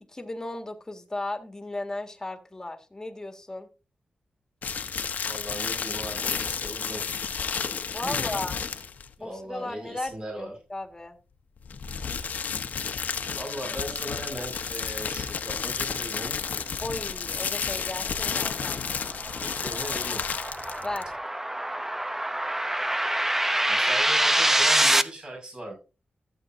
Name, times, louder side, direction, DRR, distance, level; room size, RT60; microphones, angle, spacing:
voice 1, 0.1-3.7 7.9-8.6 9.2-11.2 16.8-18.8 20.8-21.1, left 2 dB, 20° left, 5 dB, 1.8 m, -35 dB
sound 1, 4.6-9.1 11.6-21.1, left 6 dB, 75° left, 1.1 m, -31 dB
voice 2, 5.3-7.1 8.0-8.2 9.2-10.5 13.4-16.4 19.3-20.2 23.7-25.7, right 1 dB, 35° right, 0 dB, 5.8 m, -38 dB
sound 2, 18.1-25.0, right 1 dB, 10° right, 0.8 m, -25 dB
15.0 x 8.1 x 2.7 m, 0.32 s
cardioid pair, 85°, 3 cm